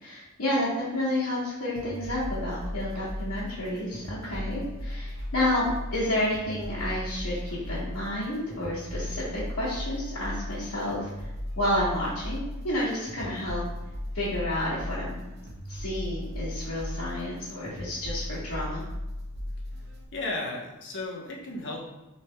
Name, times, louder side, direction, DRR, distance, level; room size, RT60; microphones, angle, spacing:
voice 1, 0.0-11.1 11.6-13.6 14.1-15.2 15.7-18.8, left 1 dB, 80° left, -10 dB, 1.2 m, -30 dB
sound 1, 1.8-20.0, left 1 dB, 50° right, 0.8 m, -37 dB
voice 2, 20.1-21.9, left 2 dB, 60° left, -1 dB, 0.9 m, -34 dB
6.0 x 3.3 x 2.2 m, 1.0 s
head